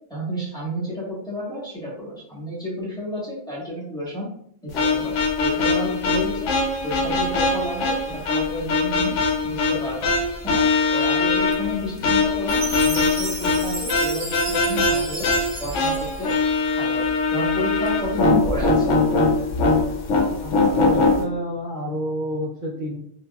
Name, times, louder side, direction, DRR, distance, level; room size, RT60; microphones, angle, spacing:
voice 1, 0.1-4.3 4.6-5.1 5.4-6.5 6.8-9.1 9.4-10.1 10.4-10.6 10.9-15.3 15.6-16.3 16.7-17.0 17.3-19.0, equal, 5° left, -8 dB, 1.1 m, -30 dB
sound 1, 4.7-21.2, left 3 dB, 85° left, 1.0 m, -22 dB
Chime, 12.5-16.8, right 2 dB, 20° right, 1.0 m, -33 dB
voice 2, 20.4-23.0, equal, 55° right, -3 dB, 0.8 m, -29 dB
3.4 x 2.3 x 2.2 m, 0.69 s
omnidirectional pair, 1.2 m